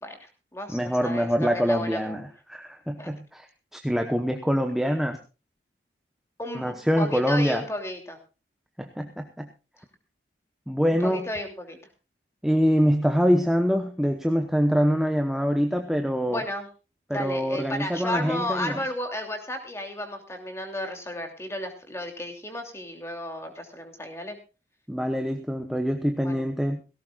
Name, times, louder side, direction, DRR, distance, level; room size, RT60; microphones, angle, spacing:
voice 1, 0.0-2.2 3.0-3.1 6.4-8.2 10.8-11.8 16.3-16.7 17.1-24.4 26.2-26.4, left 1 dB, 15° left, 4 dB, 2.9 m, -33 dB
voice 2, 0.7-3.5 3.7-5.2 6.5-7.6 8.8-9.5 10.7-11.3 12.4-16.4 17.1-18.8 24.9-26.8, equal, ahead, 5 dB, 1.0 m, -24 dB
18.0 x 17.0 x 2.4 m, 0.32 s
head